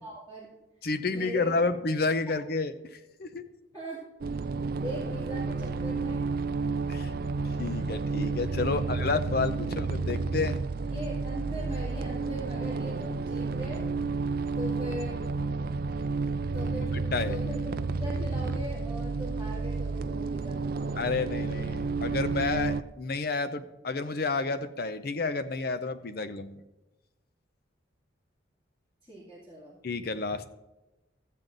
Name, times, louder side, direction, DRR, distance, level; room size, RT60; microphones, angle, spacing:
voice 1, 0.0-0.5 1.0-1.6 3.7-4.0 4.8-6.2 8.8-9.1 10.9-13.8 14.6-15.2 16.5-16.9 17.3-21.1 29.0-29.8, equal, 15° left, -8 dB, 2.3 m, -40 dB
voice 2, 0.8-3.4 6.9-7.1 7.6-10.6 16.9-17.4 21.0-26.6 29.8-30.5, left 3 dB, 50° left, 11 dB, 0.6 m, -30 dB
sound 1, 4.2-22.8, right 4 dB, 50° right, 0.3 m, -31 dB
13.5 x 7.5 x 3.9 m, 1.0 s
head